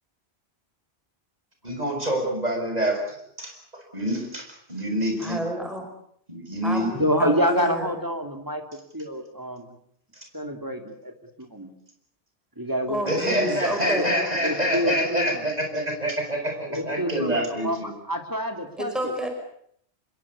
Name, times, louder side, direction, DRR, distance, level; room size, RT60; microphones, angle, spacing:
voice 1, 1.6-5.4 6.3-6.9 13.1-17.9, equal, 40° right, 3 dB, 7.4 m, -26 dB
voice 2, 5.2-5.9 6.6-7.9 12.9-14.3 18.8-19.3, equal, ahead, 4 dB, 5.5 m, -30 dB
voice 3, 6.9-8.6 8.9-9.7 10.3-11.7 12.6-13.6 14.0-14.1 14.4-15.4 16.7-19.1, equal, 20° right, 5 dB, 2.8 m, -27 dB
27.0 x 22.0 x 8.5 m, 0.68 s
omnidirectional pair, 1.1 m